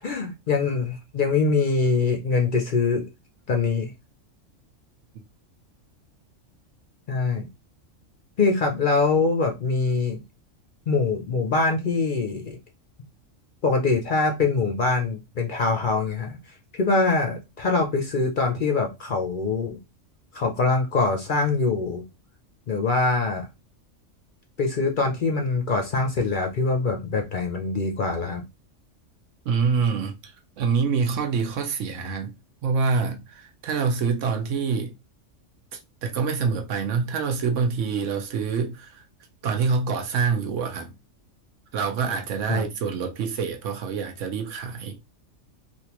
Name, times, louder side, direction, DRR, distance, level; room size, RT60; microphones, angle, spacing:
voice 1, 0.0-3.1 3.5-3.9 7.1-7.5 8.4-10.2 10.9-12.6 13.6-19.8 20.3-22.0 22.7-23.5 24.6-28.4 42.4-42.6, left 4 dB, 55° left, 0.6 m, -24 dB
voice 2, 29.5-32.3 32.6-34.9 35.7-39.0 39.4-41.0 41.7-45.0, right 5 dB, 75° right, 1.0 m, -26 dB
3.5 x 2.5 x 2.9 m
omnidirectional pair, 1.3 m